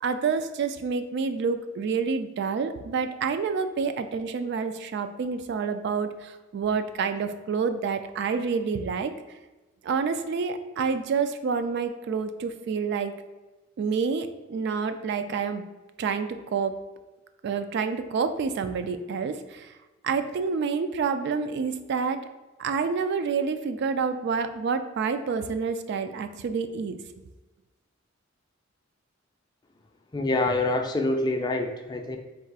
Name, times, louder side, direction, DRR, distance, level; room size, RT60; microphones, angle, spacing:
voice 1, 0.0-9.1 9.8-13.2 13.8-15.6 16.0-16.7 17.4-19.7 20.0-22.2 22.6-27.0, right 5 dB, 55° right, 9 dB, 0.3 m, -28 dB
voice 2, 30.1-32.2, left 2 dB, 20° left, 4 dB, 0.4 m, -26 dB
3.7 x 2.4 x 4.6 m, 1.2 s
head